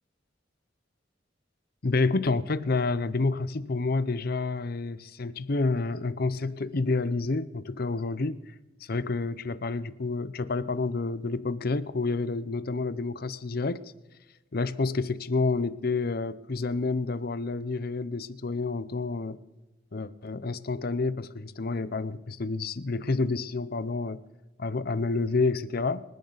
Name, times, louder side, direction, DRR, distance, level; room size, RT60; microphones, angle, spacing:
voice 1, 1.8-8.4 8.8-13.8 14.5-19.4 19.9-24.2 24.6-26.0, left 3 dB, 55° left, 15 dB, 0.7 m, -29 dB
26.5 x 10.5 x 4.0 m, 1.0 s
head